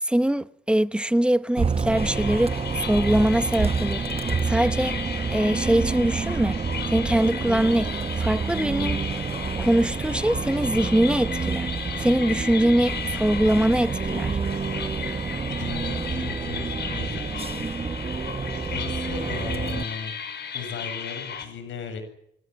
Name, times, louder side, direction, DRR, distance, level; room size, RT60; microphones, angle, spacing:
voice 1, 0.0-4.1 4.4-5.0 5.3-6.6 6.9-9.0 9.6-11.7 12.0-14.4, right 1 dB, 5° right, 1.1 m, -23 dB
Bus, 1.6-19.8, right 5 dB, 30° right, 1.2 m, -28 dB
sound 1, 1.9-21.5, left 7 dB, 60° left, 6.4 m, -35 dB
voice 2, 15.6-17.7 18.7-20.1 20.5-22.0, left 5 dB, 75° left, 7.8 m, -36 dB
25.0 x 18.5 x 9.8 m
cardioid pair, 90°, 20 cm